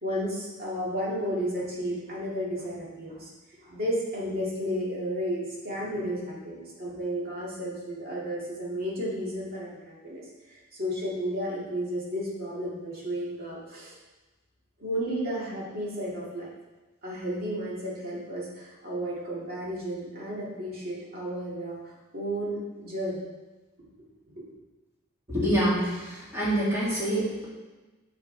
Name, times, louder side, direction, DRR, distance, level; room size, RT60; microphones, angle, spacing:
voice 1, 0.0-13.9 14.8-16.5 17.0-23.2 24.3-24.4, equal, 45° right, -5 dB, 2.1 m, -33 dB
voice 2, 25.3-27.4, right 1 dB, 15° right, -9 dB, 2.4 m, -26 dB
7.4 x 7.0 x 3.3 m, 1.2 s
head